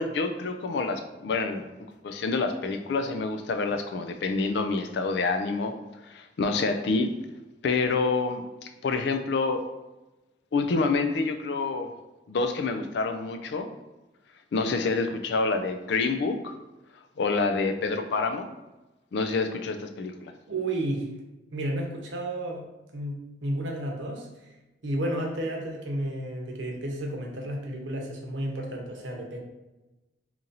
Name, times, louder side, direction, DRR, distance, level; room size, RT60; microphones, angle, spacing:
voice 1, 0.0-1.7 2.0-5.7 6.1-7.1 7.6-9.6 10.5-11.9 12.3-13.7 14.5-16.5 17.2-18.5 19.1-20.3, left 3 dB, 65° left, 7 dB, 0.4 m, -27 dB
voice 2, 20.5-21.1 21.5-22.6 22.9-24.5 24.8-29.4, right 1 dB, 90° right, 0 dB, 0.8 m, -32 dB
2.9 x 2.6 x 3.9 m, 1.0 s
head